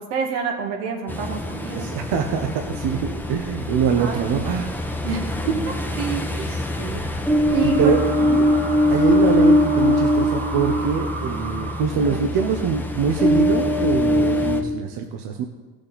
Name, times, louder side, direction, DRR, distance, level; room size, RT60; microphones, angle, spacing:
voice 1, 0.0-1.9 4.0-4.5 5.0-5.6 6.0-6.6 7.5-8.5 11.9-12.2, right 6 dB, 80° right, 2 dB, 2.1 m, -27 dB
Ocean, 1.1-14.6, equal, 5° left, 1.2 m, -22 dB
voice 2, 1.7-4.7 5.4-5.7 6.3-7.0 7.6-8.0 8.9-15.4, right 6 dB, 60° right, 4 dB, 1.2 m, -24 dB
sound 1, 7.3-12.4, right 3 dB, 30° right, 2.1 m, -34 dB
15.0 x 6.6 x 4.2 m, 1.3 s
hypercardioid pair, 75°, 45 cm